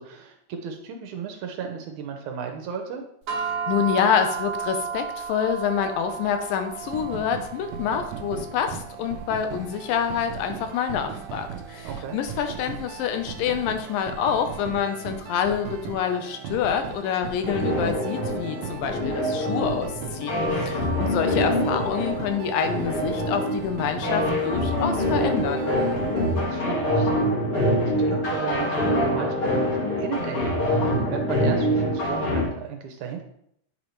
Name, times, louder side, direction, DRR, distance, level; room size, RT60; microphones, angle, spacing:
voice 1, 0.0-3.0 11.8-12.2 20.6-21.2 26.0-33.2, right 7 dB, 75° right, 4 dB, 1.9 m, -35 dB
sound 1, 3.3-13.7, right 6 dB, 55° right, 1.1 m, -35 dB
voice 2, 3.7-25.7, left 8 dB, 90° left, 7 dB, 2.5 m, -27 dB
sound 2, 6.8-26.4, right 7 dB, 90° right, 1.5 m, -38 dB
sound 3, 17.5-32.5, equal, 45° left, 2.4 m, -25 dB
8.9 x 5.3 x 3.1 m, 0.71 s
omnidirectional pair, 3.9 m